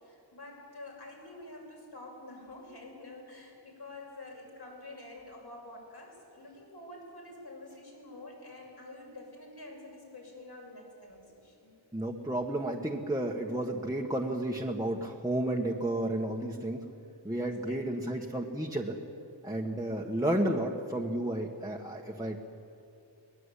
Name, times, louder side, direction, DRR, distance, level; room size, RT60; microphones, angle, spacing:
voice 1, 0.0-11.7 17.7-18.3 20.2-20.3, left 2 dB, 60° left, -1 dB, 7.2 m, -48 dB
voice 2, 11.9-16.9 17.2-19.0 19.4-22.4, right 1 dB, 5° right, -1 dB, 1.6 m, -32 dB
23.0 x 19.5 x 8.5 m, 2.6 s
wide cardioid pair, 80°, 45 cm